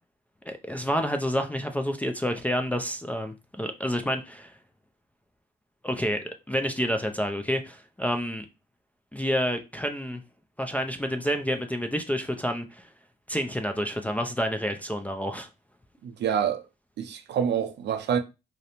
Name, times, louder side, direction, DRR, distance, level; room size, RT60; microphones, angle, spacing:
voice 1, 0.5-4.5 5.8-8.5 9.1-10.2 10.6-12.9 13.3-15.5, equal, 5° left, 0.3 m, -29 dB
voice 2, 16.0-16.6 17.0-18.2, right 8 dB, 60° right, 0.5 m, -27 dB
2.5 x 2.0 x 2.9 m
cardioid pair, 90°, 20 cm